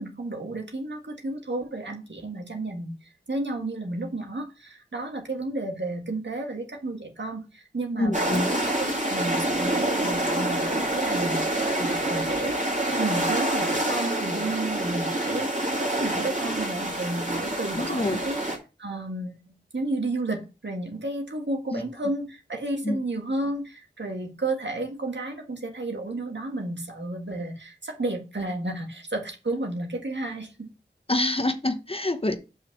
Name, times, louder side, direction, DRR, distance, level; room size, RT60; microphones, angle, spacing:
voice 1, 0.0-2.9 3.3-12.6 13.0-15.5 15.8-18.4 18.8-30.7, right 2 dB, 75° right, 1.8 m, -32 dB
voice 2, 8.0-8.5 17.8-18.2 21.7-21.8 22.8-23.0 31.1-32.3, left 1 dB, 30° left, 0.9 m, -26 dB
sound 1, 8.1-18.6, right 1 dB, 40° right, 2.6 m, -27 dB
5.7 x 4.9 x 6.0 m
wide cardioid pair, 55°, 19 cm